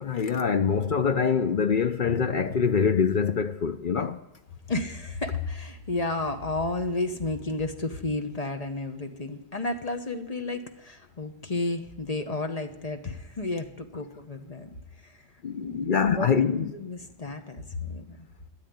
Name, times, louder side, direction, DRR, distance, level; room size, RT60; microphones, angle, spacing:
voice 1, 0.0-4.2 15.4-16.7, left 6 dB, 50° left, 0.7 m, -24 dB
Drum, 4.2-4.5, left 2 dB, 65° left, 1.9 m, -43 dB
voice 2, 4.7-14.8 15.0-15.2 15.6-18.3, left 2 dB, 35° left, 1.1 m, -32 dB
13.0 x 9.3 x 9.4 m
omnidirectional pair, 1.3 m